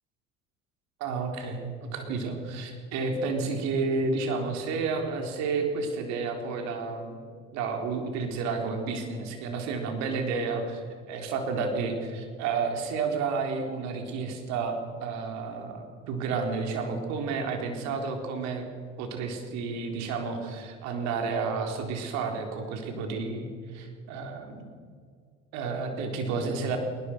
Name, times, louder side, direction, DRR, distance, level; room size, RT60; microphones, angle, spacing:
voice 1, 1.0-7.2 7.5-18.7 19.0-24.6 25.5-26.8, right 4 dB, 70° right, 4 dB, 4.1 m, -31 dB
20.5 x 20.0 x 6.3 m, 2.2 s
supercardioid pair, 85°, 29 cm